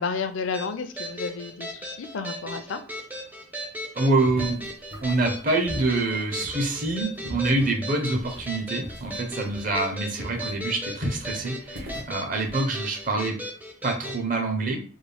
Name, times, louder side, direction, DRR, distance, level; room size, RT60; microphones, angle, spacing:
voice 1, 0.0-2.8, left 5 dB, 70° left, 9 dB, 0.4 m, -31 dB
sound 1, 0.5-14.2, equal, 10° right, 0.5 m, -37 dB
voice 2, 3.9-4.7 5.0-13.4 13.8-14.8, right 2 dB, 40° right, 3 dB, 0.8 m, -26 dB
sound 2, 4.2-9.9 10.2-13.1, equal, 70° right, 1.3 m, -38 dB
3.5 x 2.2 x 3.4 m, 0.40 s
head